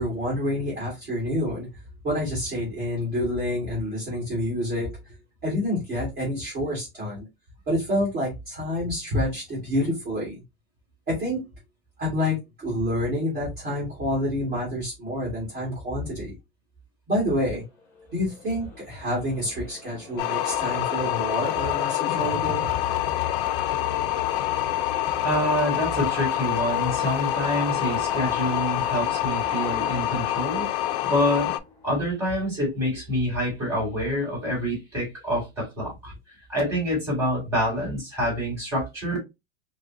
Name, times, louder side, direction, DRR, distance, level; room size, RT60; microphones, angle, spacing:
voice 1, 0.0-1.7 2.0-5.0 5.4-7.3 7.7-10.4 11.1-11.4 12.0-16.3 17.1-17.6 18.1-22.7, left 1 dB, 30° right, 1.8 m, -28 dB
sound 1, 17.8-32.1, left 3 dB, 5° left, 0.9 m, -40 dB
sound 2, 20.2-31.6, left 14 dB, 60° left, 0.4 m, -26 dB
voice 2, 25.2-30.7 31.0-31.5 31.8-36.1 36.5-39.2, equal, 10° right, 2.5 m, -26 dB
4.8 x 2.2 x 2.5 m
supercardioid pair, 175°, 31 cm